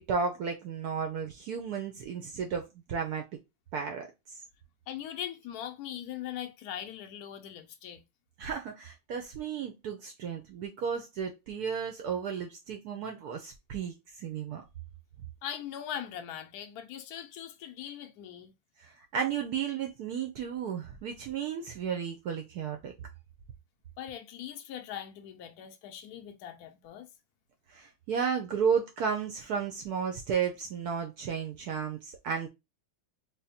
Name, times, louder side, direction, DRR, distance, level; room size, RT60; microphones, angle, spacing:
voice 1, 0.0-2.6 2.9-3.2 3.7-4.4 8.4-14.6 18.8-22.9 27.7-32.5, right 6 dB, 80° right, 0.8 m, -33 dB
voice 2, 4.9-8.0 15.4-18.5 24.0-27.1, left 10 dB, 85° left, 0.8 m, -40 dB
3.5 x 2.1 x 4.0 m
omnidirectional pair, 2.2 m